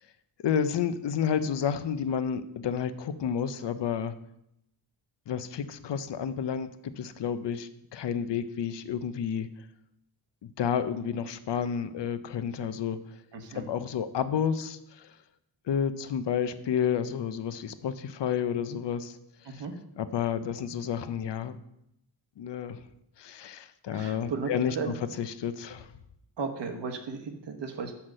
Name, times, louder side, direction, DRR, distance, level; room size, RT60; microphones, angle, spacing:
voice 1, 0.4-4.1 5.3-9.5 10.6-13.0 13.5-15.2 15.7-19.2 19.4-19.6 20.0-21.6 22.4-22.8 23.2-24.8 25.2-25.9, left 8 dB, 65° left, 12 dB, 0.6 m, -30 dB
voice 2, 13.3-13.7 19.4-19.7 23.9-24.9 26.4-27.9, right 5 dB, 65° right, 6 dB, 1.2 m, -35 dB
6.2 x 5.8 x 6.4 m, 0.81 s
wide cardioid pair, 135°, 45 cm